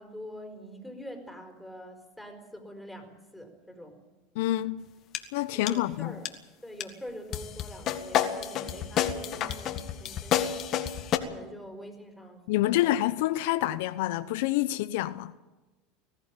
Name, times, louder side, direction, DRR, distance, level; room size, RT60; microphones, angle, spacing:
voice 1, 0.0-4.0 5.5-10.6 11.3-12.4 12.7-13.0, equal, ahead, 4.6 m, -45 dB
voice 2, 4.4-4.8 5.3-6.1 12.5-15.3, left 15 dB, 75° left, 0.7 m, -27 dB
sound 1, 5.1-5.2 5.7-5.9 6.2-6.3 6.8-6.9 7.3-11.2, left 10 dB, 45° left, 1.9 m, -29 dB
20.0 x 14.5 x 9.0 m
supercardioid pair, 110°, 0 cm